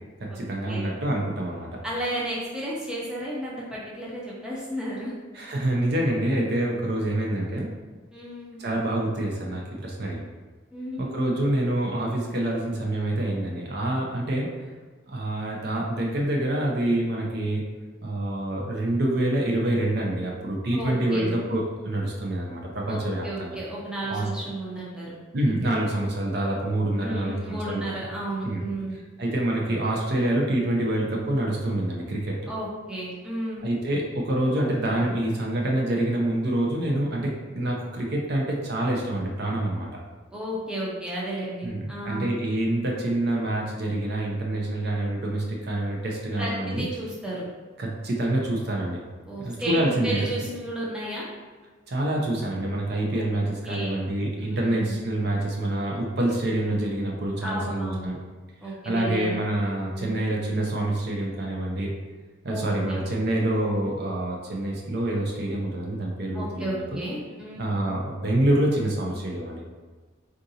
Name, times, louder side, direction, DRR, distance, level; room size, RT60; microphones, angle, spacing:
voice 1, 0.2-1.7 5.3-7.7 8.6-10.2 11.0-14.5 15.1-17.6 18.0-23.6 24.1-24.3 25.3-27.8 28.4-28.6 29.2-32.4 33.6-39.9 41.6-46.9 47.8-49.0 49.4-50.2 51.9-58.2 58.6-61.9 62.4-66.8 67.6-69.7, right 1 dB, 50° right, -1 dB, 0.5 m, -26 dB
voice 2, 1.8-5.1 8.1-8.6 10.7-11.2 20.7-21.3 22.9-25.1 27.0-29.0 32.5-33.7 40.3-42.3 46.4-47.4 49.3-51.3 53.1-53.3 53.7-54.0 54.4-55.0 57.4-58.1 58.6-59.3 59.7-60.2 62.5-63.0 66.3-67.6, right 1 dB, 5° right, -6 dB, 0.5 m, -33 dB
3.8 x 2.5 x 2.7 m, 1.4 s
head